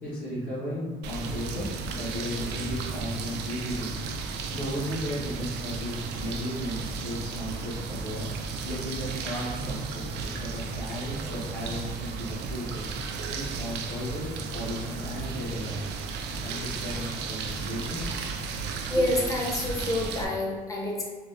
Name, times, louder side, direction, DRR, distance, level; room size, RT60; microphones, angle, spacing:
voice 1, 0.0-4.0 4.5-8.3 8.6-10.0 10.4-12.8 13.3-15.8 16.4-18.0, equal, 55° left, -9 dB, 1.1 m, -35 dB
sound 1, 1.0-20.2, right 4 dB, 80° right, 0.4 m, -34 dB
voice 2, 18.6-21.0, left 1 dB, 20° left, -2 dB, 0.7 m, -28 dB
4.8 x 2.1 x 2.4 m, 1.4 s
cardioid pair, 110°, 17 cm